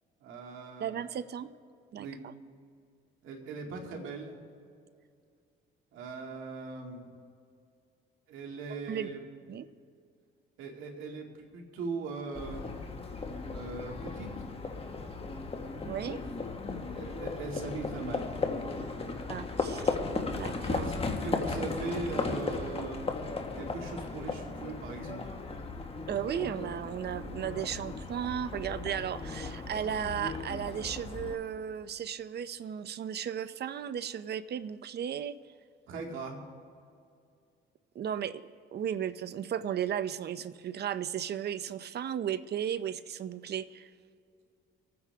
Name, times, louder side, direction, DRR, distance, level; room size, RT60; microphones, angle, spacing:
voice 1, 0.2-1.0 2.0-2.2 3.2-4.3 5.9-7.1 8.3-9.2 10.6-11.3 11.5-12.7 13.5-14.3 16.6-18.3 20.8-21.0 21.2-23.0 23.5-25.2 35.9-36.4, right 4 dB, 90° right, 1 dB, 2.4 m, -40 dB
voice 2, 0.8-1.5 1.9-2.3 8.9-9.1 9.5-9.7 15.8-16.2 19.3-20.0 20.3-20.9 26.1-35.3 37.9-38.4 38.7-43.9, right 9 dB, 55° right, 14 dB, 0.7 m, -35 dB
Livestock farm animals working animals, 12.3-31.3, left 3 dB, 30° left, 1.6 m, -36 dB
25.5 x 9.6 x 3.5 m, 2.3 s
cardioid pair, 90°, 20 cm